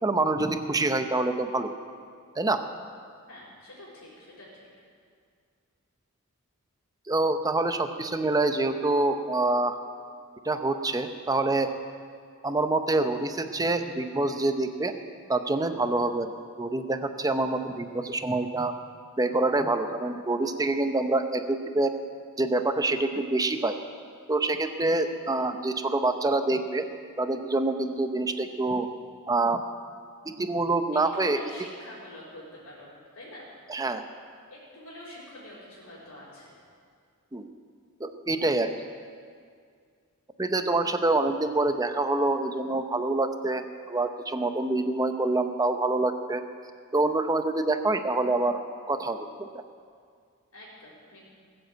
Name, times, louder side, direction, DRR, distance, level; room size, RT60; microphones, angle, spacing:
voice 1, 0.0-1.7 2.4-2.6 7.1-9.8 10.4-11.7 12.4-14.9 15.3-16.3 16.6-18.7 19.2-22.0 22.4-23.8 24.3-26.9 27.2-28.9 29.3-29.6 30.2-31.4 33.7-34.1 37.3-37.5 38.0-38.8 40.4-46.4 46.9-48.6 48.9-49.6, right 2 dB, 15° right, 8 dB, 0.7 m, -26 dB
voice 2, 3.3-4.7 30.9-32.9 33.1-33.5 34.5-36.6 50.5-51.2, left 1 dB, 75° left, -9 dB, 5.0 m, -46 dB
19.0 x 7.9 x 8.0 m, 2.1 s
head